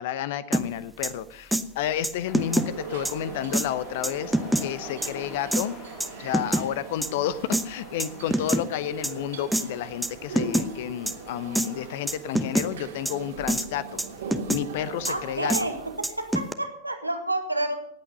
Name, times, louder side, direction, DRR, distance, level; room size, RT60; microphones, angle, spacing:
voice 1, 0.0-5.8 6.2-14.0 14.5-15.7, left 11 dB, 50° left, 17 dB, 0.8 m, -31 dB
sound 1, 0.5-0.6 1.0-1.1 1.5-1.6 2.0-2.7 3.1-3.2 3.5-3.7 4.0-4.6 5.0-5.1 5.5-5.6 6.0-6.7 7.0-7.1 7.5-7.6 8.0-8.6 9.0-9.1 9.5-9.6 10.0-10.1 10.4-10.7 11.1-11.2 11.6-11.7 12.1-12.7 13.1-13.2 13.5-13.7 14.0-14.6 15.0-15.1 15.5-15.6 16.0-16.5, right 1 dB, 5° right, 0.9 m, -25 dB
sound 2, 2.2-13.3, left 4 dB, 35° left, 4.5 m, -47 dB
sound 3, 2.4-16.0, right 5 dB, 60° right, 2.3 m, -41 dB
voice 2, 15.1-17.7, right 2 dB, 85° right, 5 dB, 1.8 m, -29 dB
18.5 x 8.7 x 5.4 m, 0.71 s
figure-of-eight pair, 90°, 0 cm